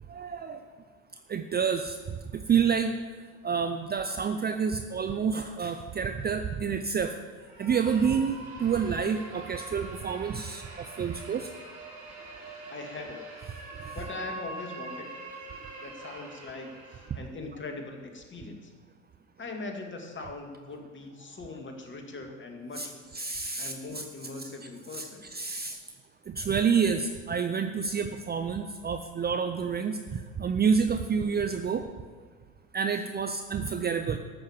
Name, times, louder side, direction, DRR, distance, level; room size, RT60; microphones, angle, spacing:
voice 1, 0.1-0.7 1.3-2.0 2.3-7.2 7.6-11.5 22.8-22.9 23.1-23.7 24.9-25.0 25.3-25.8 26.3-31.9 32.7-34.2, right 6 dB, 25° right, 8 dB, 0.6 m, -28 dB
sound 1, 7.4-17.2, right 3 dB, 70° right, 4.6 m, -44 dB
voice 2, 12.7-13.2 13.9-15.3 15.8-18.7 19.4-23.0 23.6-25.3, left 3 dB, 30° left, 3 dB, 2.3 m, -41 dB
14.0 x 6.5 x 7.3 m, 1.5 s
hypercardioid pair, 80°, 41 cm